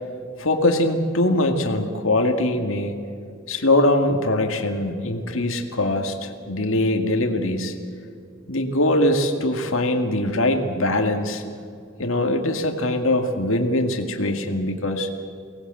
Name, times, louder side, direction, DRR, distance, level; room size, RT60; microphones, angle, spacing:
voice 1, 0.4-3.0 3.5-7.7 8.5-11.4 12.0-15.1, left 1 dB, 70° left, 4 dB, 2.2 m, -22 dB
24.0 x 19.5 x 7.9 m, 2.4 s
head